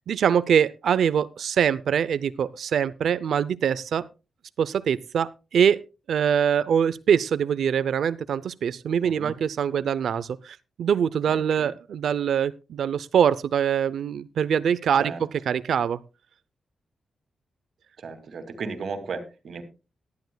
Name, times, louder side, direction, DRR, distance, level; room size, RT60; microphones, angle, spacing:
voice 1, 0.1-4.1 4.6-5.8 6.1-15.1 15.5-16.0, right 8 dB, 75° right, 17 dB, 0.6 m, -23 dB
voice 2, 9.0-9.3 11.3-11.7 14.9-15.2 18.0-19.6, right 4 dB, 55° right, 8 dB, 2.4 m, -35 dB
18.5 x 11.5 x 2.3 m, 0.29 s
wide cardioid pair, 150°, 0 cm